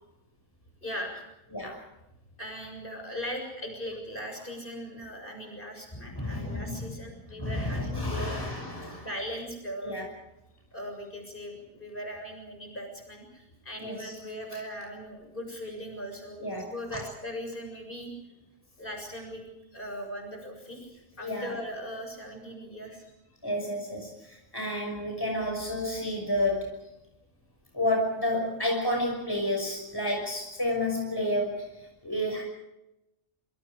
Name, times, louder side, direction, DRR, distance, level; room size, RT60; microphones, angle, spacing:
voice 1, 0.8-1.3 2.4-8.4 9.0-9.9 10.7-16.4 16.7-18.3 18.8-19.4 19.7-23.1, equal, 40° left, 2 dB, 7.2 m, -39 dB
voice 2, 6.1-6.9 7.4-9.1 9.8-10.0 13.8-14.1 16.4-17.0 21.2-21.5 23.4-26.9 27.7-31.7 32.0-32.4, left 1 dB, 15° left, 1 dB, 6.1 m, -30 dB
27.5 x 26.5 x 5.0 m, 0.90 s
omnidirectional pair, 1.4 m